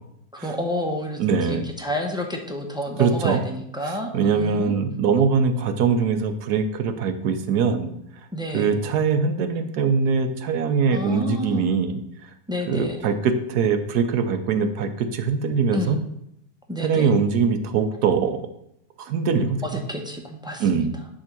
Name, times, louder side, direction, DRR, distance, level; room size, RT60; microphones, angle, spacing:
voice 1, 0.3-4.8 8.3-8.8 10.9-11.7 12.5-13.0 15.7-16.0 16.7-17.1 19.6-20.9, equal, 5° right, 1 dB, 0.8 m, -30 dB
voice 2, 1.2-1.6 3.0-3.4 4.1-7.9 8.5-12.0 12.7-16.0 16.8-18.4 19.0-19.6 20.6-20.9, right 5 dB, 70° right, 8 dB, 1.3 m, -22 dB
10.5 x 3.7 x 6.0 m, 0.77 s
omnidirectional pair, 1.8 m